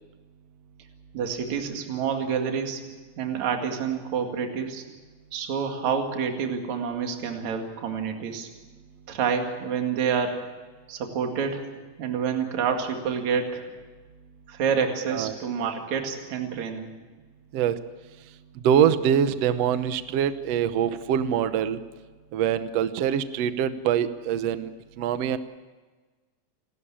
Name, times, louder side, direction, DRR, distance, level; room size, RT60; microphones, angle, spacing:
voice 1, 1.1-2.8 3.2-4.8 5.3-8.5 9.1-10.4 10.9-11.7 12.0-13.7 14.5-16.9, right 6 dB, 55° right, 3 dB, 3.3 m, -28 dB
voice 2, 18.6-21.8 22.3-24.7 25.0-25.4, right 9 dB, 70° right, 11 dB, 1.5 m, -24 dB
29.0 x 12.5 x 8.7 m, 1.3 s
omnidirectional pair, 4.1 m